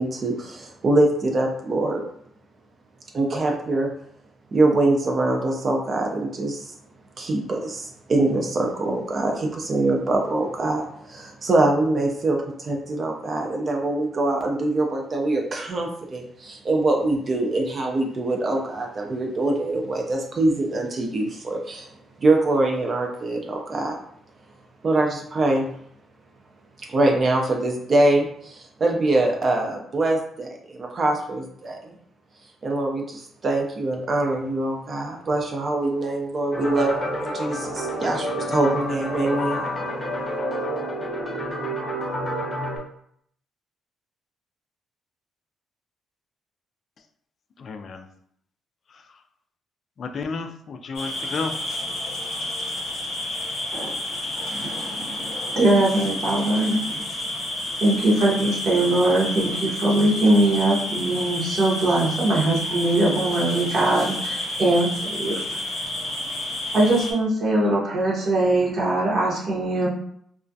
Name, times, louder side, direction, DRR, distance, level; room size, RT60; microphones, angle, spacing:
voice 1, 0.0-2.0 3.1-3.9 4.5-6.7 7.2-21.9 22.2-24.0 24.8-25.7 26.9-31.9 32.6-39.8, right 2 dB, 45° right, 1 dB, 0.4 m, -23 dB
sound 1, 36.5-42.8, equal, 20° left, 0.7 m, -29 dB
voice 2, 47.6-48.0 50.0-51.5, left 4 dB, 50° left, 6 dB, 0.3 m, -31 dB
sound 2, 50.9-67.1, left 1 dB, 80° left, 0.7 m, -30 dB
voice 3, 54.5-57.0 57.8-65.4 66.7-69.9, right 2 dB, 65° right, -4 dB, 0.8 m, -21 dB
2.3 x 2.1 x 2.6 m, 0.67 s
cardioid pair, 90°, 0 cm